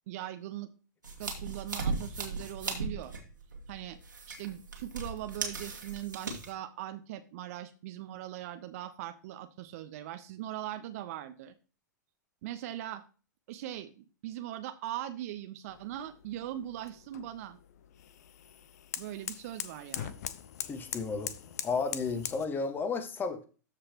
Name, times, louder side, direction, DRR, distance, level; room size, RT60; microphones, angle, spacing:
voice 1, 0.1-0.7 1.2-3.1 3.7-4.0 4.3-11.5 12.4-13.0 13.5-17.6 19.0-20.1, right 13 dB, 50° right, 9 dB, 0.8 m, -40 dB
sound 1, 1.0-6.5, right 4 dB, 85° right, 2.2 m, -37 dB
sound 2, 15.7-22.5, left 10 dB, 60° left, 0.8 m, -42 dB
voice 2, 20.6-21.3 21.6-23.5, left 4 dB, 20° left, 9 dB, 1.4 m, -33 dB
14.0 x 5.0 x 3.0 m, 0.35 s
figure-of-eight pair, 100°, 10 cm